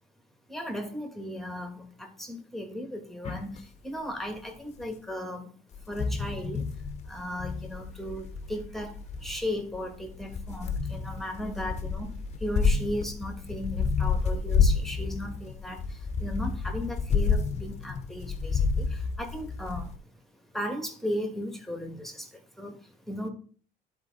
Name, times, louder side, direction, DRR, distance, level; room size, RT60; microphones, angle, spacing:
voice 1, 0.5-5.5 5.9-6.6 7.1-12.1 12.4-19.9 20.5-22.3 22.6-22.8 23.1-23.3, equal, ahead, 4 dB, 1.6 m, -36 dB
sound 1, 3.2-3.6 4.8-4.9 5.7-20.0, left 5 dB, 40° left, 0.9 m, -30 dB
10.5 x 4.3 x 4.0 m, 0.43 s
cardioid pair, 110°, 17 cm